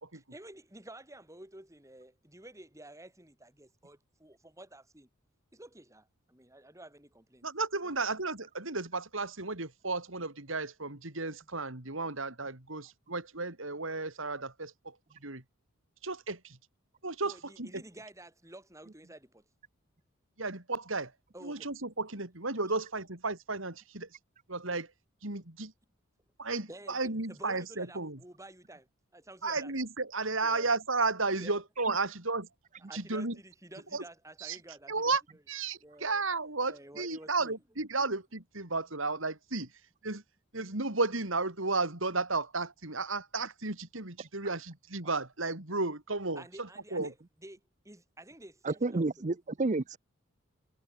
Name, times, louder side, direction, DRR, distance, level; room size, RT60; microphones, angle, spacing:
voice 1, 0.1-5.1 5.5-7.4 17.2-19.4 21.3-21.7 26.7-28.9 29.1-29.7 30.4-30.7 31.4-31.6 32.9-35.0 35.8-36.2 36.7-37.6 38.0-38.1 46.4-49.1, right 1 dB, 15° right, 7.0 m, -51 dB
voice 2, 7.4-15.0 15.2-15.4 16.0-16.6 17.0-17.3 17.6-17.8 20.4-21.1 21.4-24.2 24.5-24.9 25.2-25.7 26.4-28.2 29.4-32.5 32.9-33.4 33.9-34.0 34.4-34.6 34.9-35.2 35.5-39.7 40.0-40.2 40.5-47.1, right 3 dB, 70° right, 4.0 m, -33 dB
voice 3, 48.6-50.0, right 3 dB, 35° right, 0.7 m, -30 dB
head